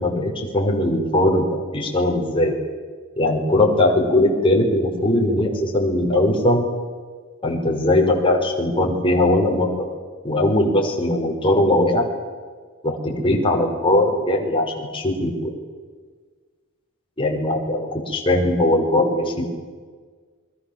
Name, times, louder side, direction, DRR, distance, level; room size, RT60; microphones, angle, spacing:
voice 1, 0.0-1.4 1.7-2.5 3.2-6.7 7.4-9.7 10.2-12.1 12.8-15.5 17.2-19.5, left 1 dB, 25° left, 0 dB, 5.5 m, -20 dB
28.5 x 23.5 x 7.5 m, 1.5 s
head